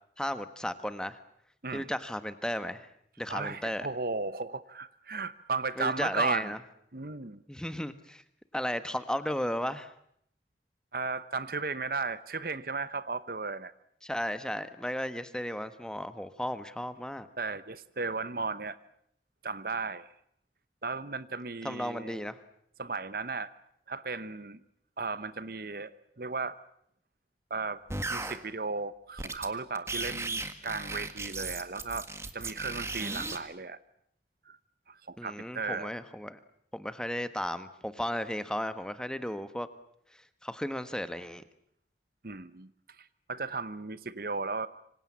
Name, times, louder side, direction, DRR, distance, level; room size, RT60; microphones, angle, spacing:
voice 1, 0.2-1.2 1.7-2.9 3.2-3.9 5.8-6.6 7.5-8.2 8.5-9.9 14.0-17.3 21.6-22.4 35.2-36.4 36.7-39.7 40.4-41.4, equal, 5° left, 11 dB, 1.3 m, -34 dB
voice 2, 3.3-6.5 6.9-7.4 10.9-13.7 17.4-18.8 19.4-20.1 20.8-22.2 22.8-23.5 23.9-24.6 25.0-25.9 26.2-26.6 27.5-27.8 28.1-32.1 32.3-33.8 34.5-34.6 34.9-35.9 42.2-42.7 43.3-44.7, right 4 dB, 55° right, 15 dB, 1.0 m, -35 dB
sound 1, 27.9-28.4 29.2-29.5 29.7-33.4, right 3 dB, 15° right, 1.7 m, -36 dB
26.5 x 25.5 x 7.4 m, 0.70 s
head